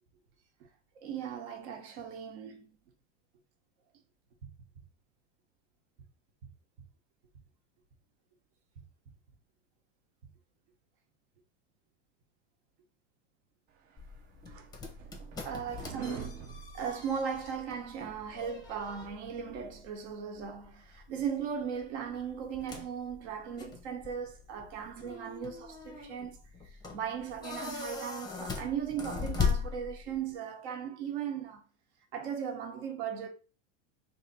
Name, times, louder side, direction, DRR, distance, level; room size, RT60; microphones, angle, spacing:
voice 1, 0.9-2.8 4.4-4.5 15.4-16.3 16.7-26.4 26.9-31.6 32.1-33.3, right 7 dB, 70° right, 1.1 m, -37 dB
sound 1, 14.0-30.3, left 5 dB, 10° left, 0.6 m, -40 dB
sound 2, 14.0-17.7, right 6 dB, 25° right, 0.3 m, -44 dB
3.3 x 2.8 x 4.1 m
supercardioid pair, 135°, 37 cm